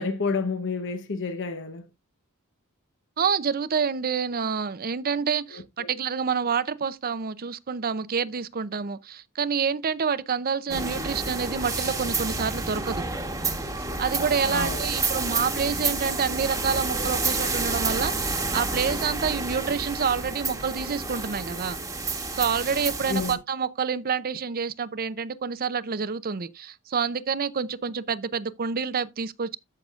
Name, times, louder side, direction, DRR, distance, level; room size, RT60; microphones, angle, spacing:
voice 1, 0.0-1.9 5.5-5.9 10.7-10.8 14.5-14.9 23.1-23.4, left 4 dB, 55° left, 1.0 m, -30 dB
voice 2, 3.2-13.0 14.0-21.8 22.3-29.6, right 6 dB, 40° right, 0.6 m, -28 dB
sound 1, 10.7-23.3, right 3 dB, 15° right, 1.3 m, -29 dB
13.0 x 6.5 x 2.4 m
head